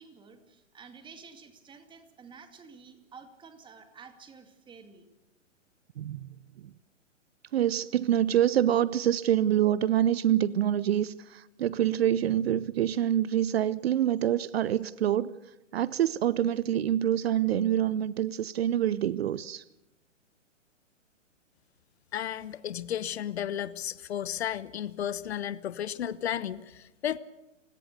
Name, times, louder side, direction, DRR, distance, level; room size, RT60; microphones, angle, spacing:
voice 1, 0.0-5.1, right 5 dB, 10° right, 2.2 m, -51 dB
voice 2, 6.0-6.3 7.5-15.3 15.7-19.6, right 11 dB, 55° right, 0.7 m, -26 dB
voice 3, 22.1-27.2, left 10 dB, 55° left, 1.0 m, -33 dB
29.5 x 17.0 x 6.7 m
hypercardioid pair, 130°, 38 cm